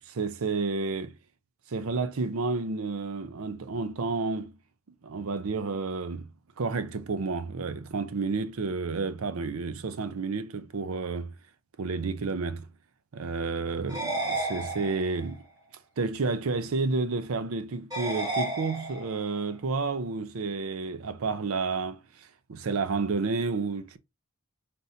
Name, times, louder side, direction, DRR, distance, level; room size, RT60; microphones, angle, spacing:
voice 1, 0.1-1.1 1.7-4.6 5.0-6.3 6.6-11.4 11.8-12.7 13.1-15.5 16.0-24.0, right 4 dB, 90° right, 0.6 m, -31 dB
sound 1, 13.9-15.3 17.9-19.3, right 2 dB, 20° right, 1.1 m, -32 dB
4.1 x 3.5 x 2.7 m
head